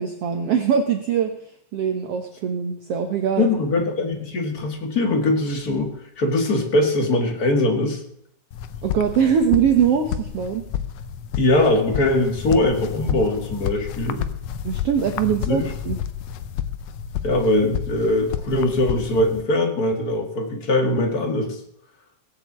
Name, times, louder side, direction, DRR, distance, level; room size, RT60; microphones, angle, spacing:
voice 1, 0.0-1.3 1.7-3.5 8.8-10.6 14.6-16.0, right 7 dB, 60° right, 5 dB, 1.7 m, -22 dB
voice 2, 3.4-8.0 11.3-14.3 15.5-15.7 17.2-21.6, left 1 dB, 35° left, 4 dB, 1.9 m, -21 dB
sound 1, 8.5-19.4, left 9 dB, 75° left, 1.5 m, -30 dB
17.5 x 7.0 x 8.0 m, 0.70 s
omnidirectional pair, 3.7 m